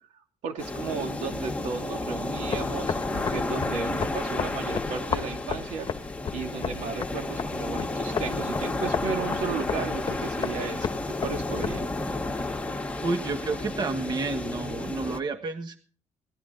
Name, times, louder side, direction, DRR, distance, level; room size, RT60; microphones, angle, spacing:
voice 1, 0.4-5.9 6.3-11.9, right 5 dB, 85° right, 4 dB, 2.7 m, -34 dB
sound 1, 0.6-15.2, left 2 dB, 10° left, 1.8 m, -32 dB
sound 2, 2.3-12.2, left 7 dB, 40° left, 1.2 m, -34 dB
voice 2, 13.0-15.8, right 3 dB, 35° right, 6 dB, 1.4 m, -30 dB
18.5 x 12.5 x 3.9 m, 0.40 s
cardioid pair, 135°, 12 cm